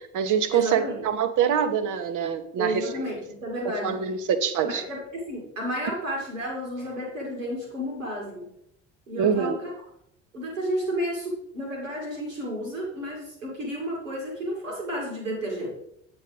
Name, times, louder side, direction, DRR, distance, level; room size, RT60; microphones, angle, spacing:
voice 1, 0.0-2.9 3.6-4.8 9.2-9.6, right 7 dB, 50° right, 10 dB, 1.1 m, -25 dB
voice 2, 0.5-1.0 2.6-4.0 4.6-8.5 9.1-9.7 10.3-15.7, equal, 85° right, -1 dB, 2.5 m, -32 dB
8.9 x 8.8 x 3.4 m, 0.73 s
figure-of-eight pair, 55°, 38 cm